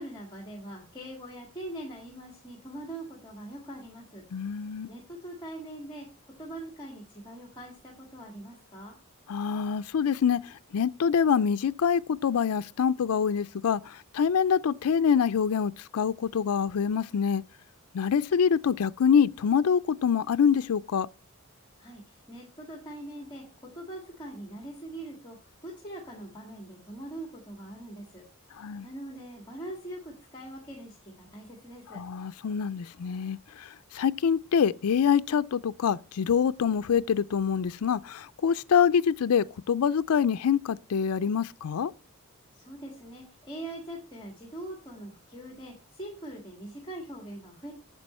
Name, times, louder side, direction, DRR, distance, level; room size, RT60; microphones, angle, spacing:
voice 1, 0.0-4.2 4.9-6.1 6.4-9.0 21.8-32.0 42.5-47.7, right 1 dB, 20° left, 1.7 m, -42 dB
voice 2, 4.3-4.9 9.3-17.4 17.9-21.1 28.6-28.9 31.9-41.9, left 7 dB, 85° left, 0.4 m, -25 dB
9.0 x 7.6 x 4.2 m
head